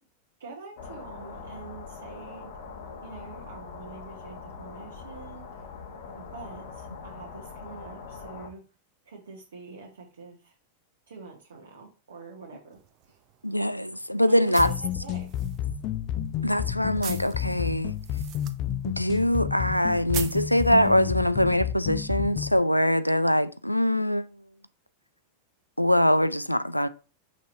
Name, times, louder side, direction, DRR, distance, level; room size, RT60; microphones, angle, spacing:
voice 1, 0.4-2.5 3.0-5.5 6.2-8.6 9.0-10.5 11.1-12.8 13.0-13.2 14.3-15.3, right 4 dB, 65° right, 1.4 m, -45 dB
sound 1, 0.8-8.5, left 5 dB, 55° left, 1.2 m, -42 dB
sound 2, 12.7-21.3, right 11 dB, 40° right, 0.7 m, -44 dB
voice 2, 13.4-14.7 16.4-17.9 18.8-24.3 25.8-26.9, equal, 90° left, 0.3 m, -23 dB
sound 3, 14.6-22.6, left 10 dB, 40° left, 0.5 m, -31 dB
6.0 x 4.3 x 3.9 m
figure-of-eight pair, 90°, 0 cm